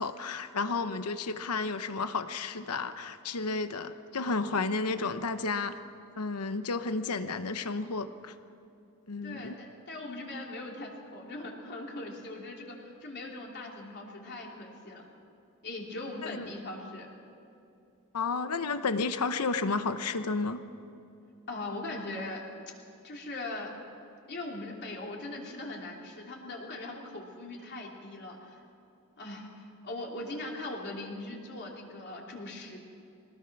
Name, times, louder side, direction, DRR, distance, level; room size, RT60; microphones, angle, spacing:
voice 1, 0.0-5.8 6.2-8.3 9.1-9.6 16.3-16.5 18.1-20.6, left 4 dB, 85° left, 10 dB, 1.0 m, -32 dB
voice 2, 9.2-15.0 15.6-17.1 21.5-22.4 23.0-23.7 24.3-28.6 29.2-32.8, left 2 dB, 50° left, -1 dB, 3.2 m, -40 dB
22.5 x 19.0 x 6.1 m, 2.7 s
head